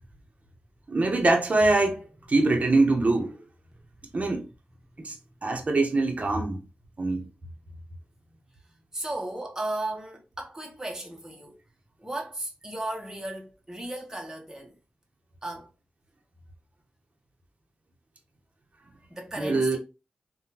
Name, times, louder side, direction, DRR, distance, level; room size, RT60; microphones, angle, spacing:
voice 1, 0.9-3.4 4.1-4.5 5.0-5.2 5.4-6.6 7.0-7.2 19.4-19.8, right 2 dB, 45° right, 0.8 m, -23 dB
voice 2, 8.9-11.6 12.0-14.8 15.4-15.7 19.1-19.8, right 1 dB, 15° right, 0.9 m, -35 dB
3.5 x 2.2 x 2.8 m
cardioid pair, 55°, 3 cm